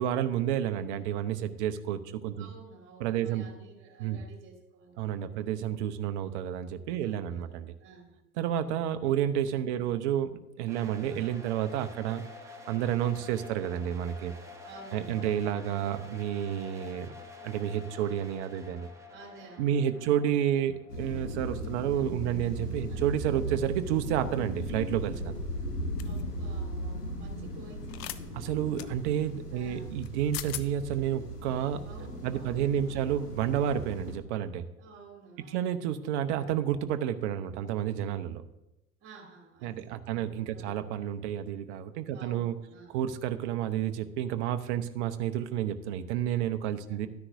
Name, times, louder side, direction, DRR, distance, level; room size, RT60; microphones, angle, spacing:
voice 1, 0.0-2.5 3.0-3.4 4.0-4.2 5.0-7.7 8.4-10.3 10.6-14.3 14.9-17.1 17.4-18.9 19.6-25.3 28.3-31.8 32.2-34.6 35.5-38.4 39.6-42.5 42.9-47.1, right 10 dB, 50° right, 10 dB, 0.8 m, -30 dB
voice 2, 2.3-5.5 7.0-8.2 9.7-9.9 14.6-15.5 19.1-20.1 22.9-23.1 23.4-23.6 26.0-28.6 29.5-30.0 31.8-33.2 34.8-35.8 39.0-40.9 42.1-43.0 46.9-47.1, right 4 dB, 25° right, 1 dB, 2.6 m, -52 dB
sound 1, 10.7-23.5, left 3 dB, 5° right, 1.3 m, -49 dB
sound 2, 20.9-34.2, equal, 85° left, 1.7 m, -37 dB
sound 3, 26.0-26.2 27.9-28.2 28.8-28.9 30.0-30.1 30.3-30.7, left 15 dB, 30° left, 0.3 m, -38 dB
12.5 x 9.8 x 2.6 m, 0.91 s
figure-of-eight pair, 85°, 45 cm